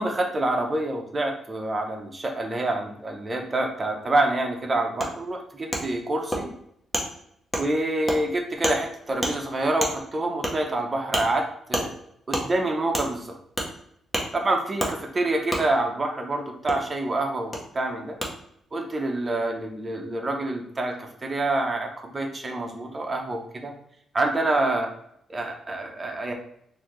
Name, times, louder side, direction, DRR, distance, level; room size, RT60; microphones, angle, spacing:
voice 1, 0.0-6.5 7.6-11.9 12.3-13.3 14.3-18.2 18.7-23.7 24.1-24.9 25.3-26.3, right 2 dB, 20° right, 2 dB, 0.7 m, -27 dB
Wood, 5.0-5.1 5.7-5.8 6.3-6.4 6.9-7.1 7.5-7.7 8.1-8.2 8.6-8.8 9.2-9.3 9.8-9.9 10.4-10.5 11.1-11.2 11.7-11.9 12.3-12.5 12.9-13.1 13.6-13.7 14.1-14.3 14.8-14.9 15.5-15.6 16.7-16.8 17.5-17.6 18.2-18.3, equal, 15° left, 0.8 m, -26 dB
4.0 x 2.7 x 3.1 m, 0.73 s
cardioid pair, 145°, 0 cm